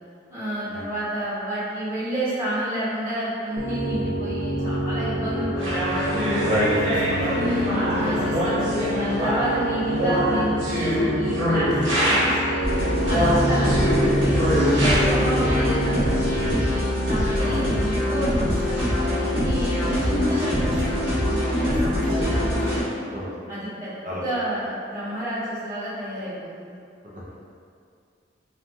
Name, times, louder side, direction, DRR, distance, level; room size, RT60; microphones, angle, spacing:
voice 1, 0.3-6.6 7.2-12.7 13.1-16.6 17.0-23.0 23.5-26.8, right 1 dB, 15° right, -15 dB, 1.3 m, -30 dB
Piano, 3.6-16.5, right 1 dB, 25° left, 0.4 m, -27 dB
sound 1, 5.6-12.5 13.1-15.0, equal, 90° right, 1.1 m, -24 dB
voice 2, 6.4-8.5 13.4-13.9 17.4-17.6 20.2-20.4 22.4-22.7 23.1-23.3 24.0-24.2 27.1-27.2, left 1 dB, 40° right, -6 dB, 0.5 m, -29 dB
sound 2, 12.6-22.8, left 1 dB, 65° right, 1.3 m, -23 dB
3.0 x 2.3 x 2.5 m, 2.3 s
head